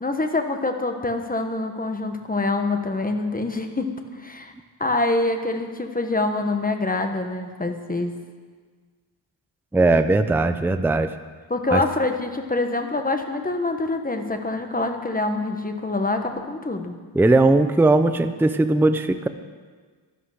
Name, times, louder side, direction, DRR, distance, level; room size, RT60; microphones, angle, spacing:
voice 1, 0.0-4.5 4.8-8.1 11.5-16.9, left 2 dB, 20° left, 6 dB, 1.2 m, -25 dB
voice 2, 9.7-11.1 11.7-11.8 17.1-19.3, right 2 dB, 5° right, 10 dB, 0.5 m, -18 dB
12.5 x 11.5 x 6.5 m, 1.5 s
wide cardioid pair, 110°, 47 cm